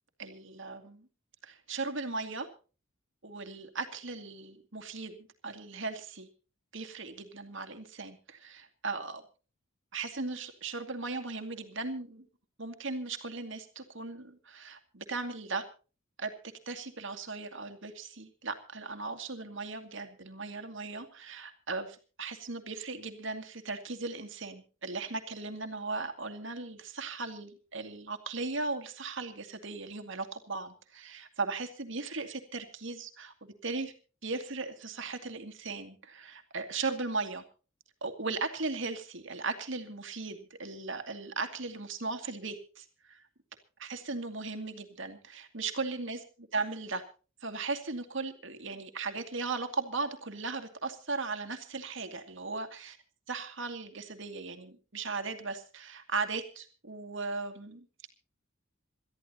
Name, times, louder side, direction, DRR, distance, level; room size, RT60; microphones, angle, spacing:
voice 1, 0.2-1.1 1.4-2.5 3.2-6.3 6.7-9.2 9.9-12.3 12.6-15.6 16.2-16.3 16.7-33.9 34.2-37.4 38.0-43.2 43.8-46.2 46.5-47.0 47.4-53.0 53.3-57.9, right 3 dB, 65° right, 7 dB, 2.2 m, -37 dB
27.5 x 13.5 x 2.9 m, 0.35 s
head